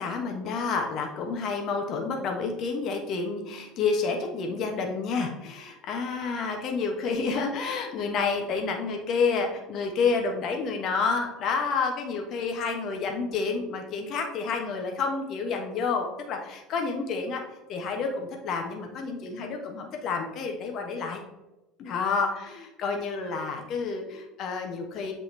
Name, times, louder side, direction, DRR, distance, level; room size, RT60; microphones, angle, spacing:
voice 1, 0.0-17.4 17.7-21.2 21.8-25.1, left 4 dB, 45° left, 3 dB, 1.2 m, -29 dB
8.0 x 3.8 x 3.3 m, 1.0 s
figure-of-eight pair, 70°, 0 cm